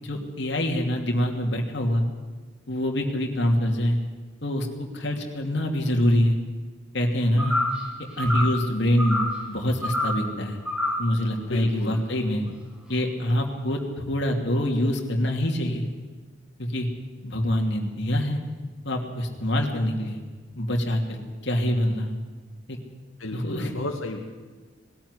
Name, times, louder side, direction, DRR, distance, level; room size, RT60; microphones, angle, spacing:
voice 1, 0.0-2.0 2.7-4.0 4.4-6.4 6.9-7.6 8.2-10.6 11.0-12.4 12.9-13.8 14.1-15.9 16.6-16.9 17.2-18.4 18.8-20.2 20.6-22.1 22.7-22.8 23.3-23.7, left 1 dB, 60° left, 1 dB, 2.9 m, -25 dB
sound 1, 7.4-7.8 8.2-8.6 9.0-9.4 9.8-10.2 10.6-11.1, left 1 dB, 5° right, 3.5 m, -27 dB
voice 2, 11.5-12.0 12.4-12.5 23.2-24.2, left 2 dB, 85° left, 2 dB, 2.2 m, -32 dB
19.5 x 13.5 x 9.9 m, 1.4 s
head